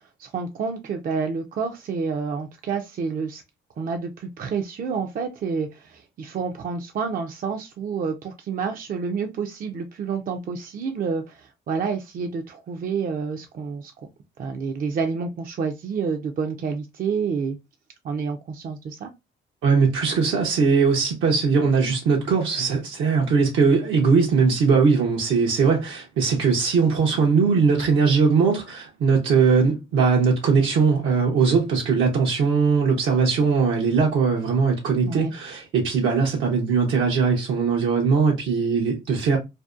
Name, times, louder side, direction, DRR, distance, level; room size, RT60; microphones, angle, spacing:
voice 1, 0.2-3.4 3.8-14.1 14.4-17.6 18.0-19.1 35.0-35.3, right 5 dB, 45° right, 0.4 m, -29 dB
voice 2, 19.6-39.4, right 5 dB, 80° right, 0.7 m, -20 dB
2.6 x 2.1 x 2.3 m
cardioid pair, 90°, 20 cm